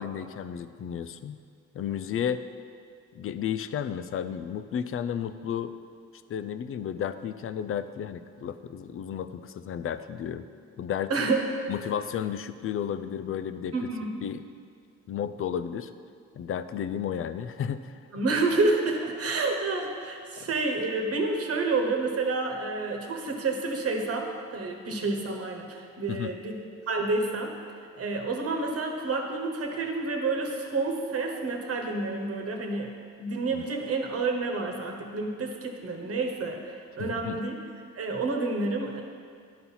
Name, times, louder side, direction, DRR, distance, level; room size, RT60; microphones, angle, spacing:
voice 1, 0.0-1.4 1.7-2.4 3.1-5.7 6.3-10.5 10.8-11.1 11.7-13.8 14.2-14.4 15.1-15.9 16.4-18.0 20.4-20.5 26.1-26.3 33.6-33.7 37.0-37.4, left 8 dB, 45° left, 12 dB, 0.5 m, -33 dB
voice 2, 11.1-11.4 13.7-14.1 18.1-27.5 27.9-37.5 37.9-39.0, right 3 dB, 50° right, 3 dB, 1.2 m, -29 dB
11.0 x 4.3 x 5.6 m, 2.2 s
cardioid pair, 90°, 30 cm